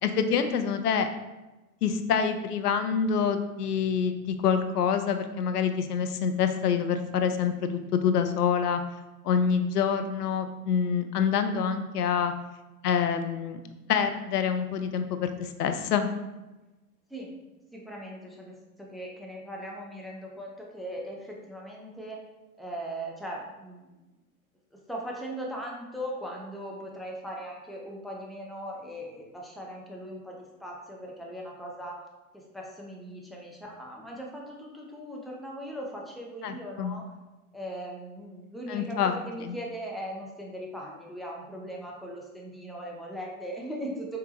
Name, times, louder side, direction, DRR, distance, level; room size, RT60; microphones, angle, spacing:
voice 1, 0.0-1.1 1.8-8.8 9.2-12.3 12.8-13.6 13.9-16.1 36.4-36.9 38.7-39.1 39.5-39.6, left 7 dB, 85° left, 8 dB, 0.6 m, -26 dB
voice 2, 17.7-22.2 22.6-23.9 24.9-32.0 32.3-37.0 37.5-44.2, equal, ahead, -2 dB, 0.8 m, -39 dB
4.8 x 3.4 x 3.0 m, 1.1 s
hypercardioid pair, 95°, 45 cm